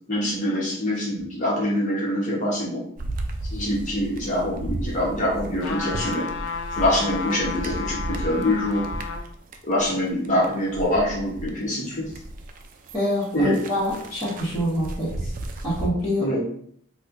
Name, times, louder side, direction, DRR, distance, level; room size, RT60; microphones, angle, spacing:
voice 1, 0.1-2.8 3.5-6.3 6.8-8.8 9.7-12.1 13.3-13.6 16.2-16.4, left 1 dB, 40° left, -5 dB, 1.0 m, -24 dB
sound 1, 3.0-11.5 11.9-15.9, right 1 dB, 40° right, 0.3 m, -34 dB
sound 2, 5.6-9.3 9.8-9.9, left 5 dB, 65° left, 0.4 m, -32 dB
voice 2, 12.9-15.3 15.6-16.4, left 1 dB, 15° left, -12 dB, 1.2 m, -25 dB
4.2 x 2.2 x 2.5 m, 0.63 s
head